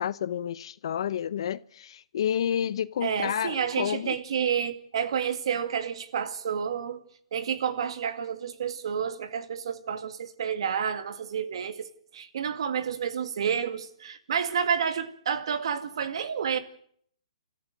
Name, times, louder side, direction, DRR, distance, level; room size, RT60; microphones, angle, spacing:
voice 1, 0.0-4.2, left 9 dB, 55° left, 0.8 m, -30 dB
voice 2, 3.0-7.0 7.3-11.9 12.1-16.6, right 7 dB, 60° right, 2.2 m, -30 dB
29.5 x 14.0 x 6.7 m
hypercardioid pair, 155°, 3 cm